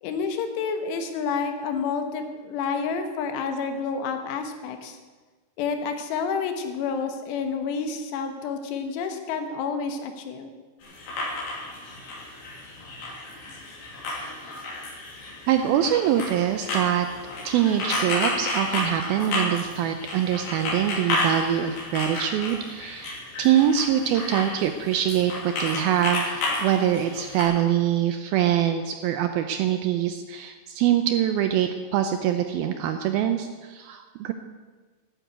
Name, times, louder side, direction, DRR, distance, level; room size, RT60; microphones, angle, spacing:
voice 1, 0.0-5.0 5.6-10.5, left 5 dB, 85° left, 6 dB, 3.4 m, -29 dB
sound 1, 10.8-27.4, left 2 dB, 60° left, 4.6 m, -32 dB
voice 2, 15.5-17.1 17.5-34.3, right 10 dB, 80° right, 7 dB, 2.2 m, -24 dB
12.0 x 9.4 x 8.0 m, 1.4 s
omnidirectional pair, 4.9 m